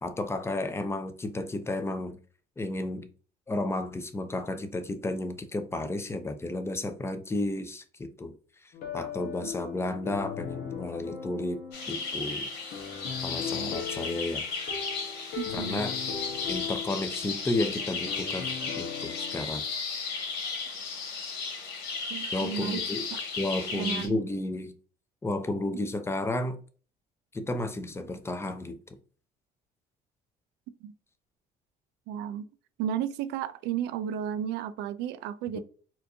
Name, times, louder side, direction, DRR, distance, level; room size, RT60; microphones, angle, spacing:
voice 1, 0.0-2.2 2.6-3.1 3.5-8.3 8.6-11.6 11.9-12.5 13.2-14.5 15.5-16.0 16.5-18.5 18.8-19.6 22.3-23.0 23.4-24.7 25.2-26.6 27.3-28.8 35.5-35.6, left 2 dB, 15° left, 0.6 m, -32 dB
sound 1, 8.7-19.4, left 8 dB, 65° left, 1.1 m, -39 dB
sound 2, 11.7-24.1, left 4 dB, 85° left, 1.6 m, -34 dB
voice 2, 15.4-15.8 22.1-23.2 23.7-24.2 30.8-30.9 32.1-32.5 32.8-35.6, right 9 dB, 85° right, 0.5 m, -33 dB
4.4 x 2.6 x 2.7 m
cardioid pair, 110°, 17 cm